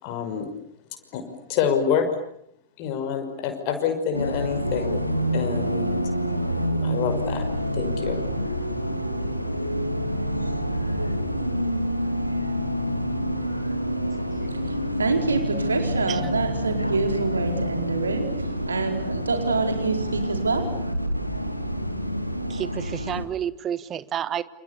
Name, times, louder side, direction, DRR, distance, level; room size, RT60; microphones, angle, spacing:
voice 1, 0.0-0.5 1.1-1.2 1.5-2.1 2.8-6.0 6.8-7.4 7.7-8.2, left 7 dB, 45° left, 6 dB, 5.8 m, -27 dB
Bus, 4.1-23.3, equal, 90° left, 2.4 m, -27 dB
voice 2, 14.7-20.6, right 4 dB, 75° right, 5 dB, 4.5 m, -26 dB
voice 3, 22.5-24.4, right 9 dB, 30° right, 16 dB, 1.3 m, -30 dB
29.5 x 28.5 x 7.0 m, 0.73 s
figure-of-eight pair, 90°, 0 cm